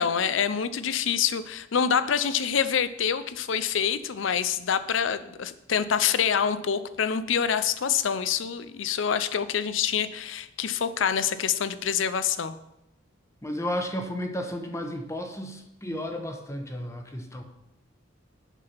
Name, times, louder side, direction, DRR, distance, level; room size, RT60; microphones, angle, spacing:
voice 1, 0.0-12.6, left 7 dB, 70° left, 13 dB, 0.5 m, -26 dB
voice 2, 13.4-17.4, equal, 15° left, 5 dB, 1.0 m, -33 dB
8.1 x 5.8 x 5.8 m, 0.86 s
head